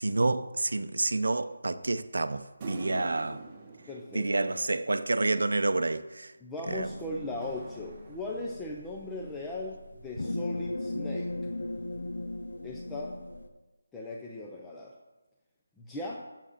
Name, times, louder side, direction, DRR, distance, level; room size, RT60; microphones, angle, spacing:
voice 1, 0.0-3.5 4.1-6.3 6.7-6.9, right 2 dB, 75° right, 0.6 m, -29 dB
sound 1, 2.6-5.3 6.7-8.8, right 3 dB, 15° right, 1.0 m, -47 dB
voice 2, 3.9-4.5 6.4-11.3 12.6-13.2 13.9-14.9 15.8-16.2, left 2 dB, 5° left, 0.5 m, -38 dB
sound 2, 6.6-13.5, left 1 dB, 80° left, 1.0 m, -38 dB
7.6 x 7.4 x 6.6 m
figure-of-eight pair, 175°, 0 cm